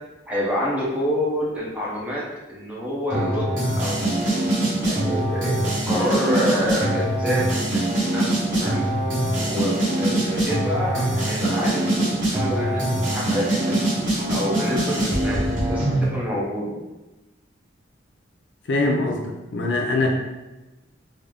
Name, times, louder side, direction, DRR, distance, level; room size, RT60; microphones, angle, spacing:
voice 1, 0.3-2.2 2.5-4.2 4.8-8.8 9.3-13.9 14.3-16.8, equal, 5° right, -6 dB, 0.7 m, -27 dB
sound 1, 3.1-16.0, right 1 dB, 85° right, 1.4 m, -23 dB
voice 2, 18.7-19.2 19.5-20.1, left 2 dB, 70° left, 1 dB, 0.5 m, -22 dB
3.7 x 2.0 x 3.4 m, 1.1 s
head